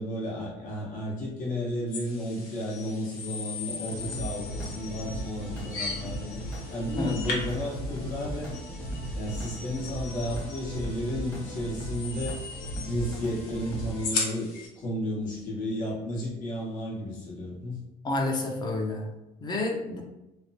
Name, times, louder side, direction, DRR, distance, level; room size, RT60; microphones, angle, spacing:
voice 1, 0.0-6.4 6.7-8.5 9.1-12.4 12.8-17.8, equal, 60° left, -5 dB, 1.1 m, -33 dB
sound 1, 1.9-14.7, left 4 dB, 85° left, 0.7 m, -39 dB
sound 2, 3.8-14.1, equal, 5° left, 0.9 m, -37 dB
voice 2, 18.0-19.1 19.4-20.0, left 2 dB, 25° left, 1 dB, 0.5 m, -29 dB
2.9 x 2.1 x 2.7 m, 0.99 s
cardioid pair, 110°, 15 cm